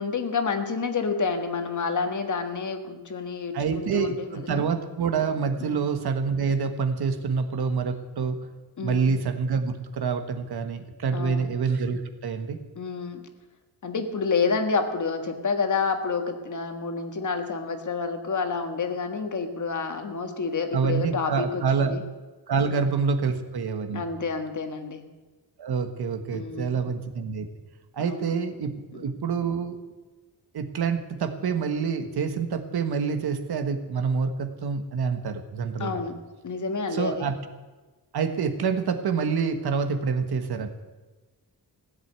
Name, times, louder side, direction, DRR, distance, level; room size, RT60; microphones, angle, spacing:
voice 1, 0.0-4.6 5.6-5.8 8.8-9.2 11.1-11.5 12.7-13.2 13.8-22.0 22.6-22.9 23.9-25.0 26.3-26.9 28.0-28.3 28.9-29.1 35.8-36.2 36.4-37.3, left 4 dB, 50° left, 6 dB, 1.6 m, -29 dB
voice 2, 3.5-8.4 8.8-12.6 20.7-21.9 22.5-24.0 25.6-27.5 27.9-29.8 30.5-35.9 36.9-37.3 38.1-40.7, right 5 dB, 75° right, 7 dB, 1.5 m, -27 dB
16.0 x 7.9 x 9.4 m, 1.3 s
wide cardioid pair, 135°, 39 cm